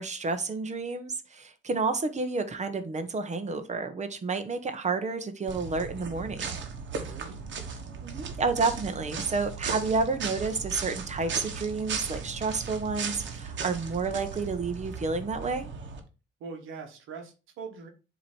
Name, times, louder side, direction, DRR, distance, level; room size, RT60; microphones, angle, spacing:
voice 1, 0.0-6.6 8.0-15.7, right 4 dB, 35° right, 1.0 m, -30 dB
sound 1, 5.5-16.0, right 5 dB, 65° right, 1.3 m, -37 dB
voice 2, 6.9-7.4 16.4-17.9, right 5 dB, 85° right, 1.3 m, -42 dB
7.5 x 3.1 x 4.3 m
cardioid pair, 90°, 20 cm